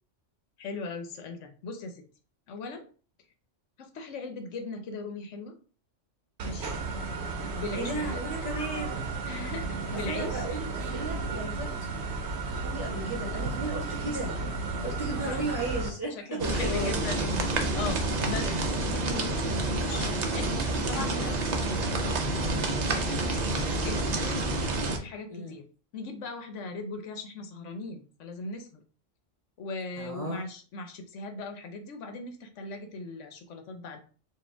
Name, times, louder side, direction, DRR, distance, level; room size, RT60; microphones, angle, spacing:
voice 1, 0.6-2.0 2.5-2.8 3.8-5.5 6.4-6.7 7.5-8.2 9.1-10.4 14.8-14.9 15.2-15.4 16.3-18.5 18.9-20.5 20.9-24.4 24.9-25.6 25.9-28.7 29.6-34.0, left 3 dB, 80° left, 5 dB, 1.1 m, -39 dB
sound 1, 6.4-15.9, right 3 dB, 65° right, 0.9 m, -34 dB
voice 2, 7.7-9.0 9.9-11.9 12.5-14.3 14.8-17.2 18.2-18.6 25.3-25.5 30.0-30.4, right 1 dB, 15° left, -6 dB, 2.3 m, -35 dB
sound 2, 16.4-25.0, right 2 dB, 45° right, 0.6 m, -28 dB
4.6 x 2.5 x 3.4 m, 0.39 s
omnidirectional pair, 1.2 m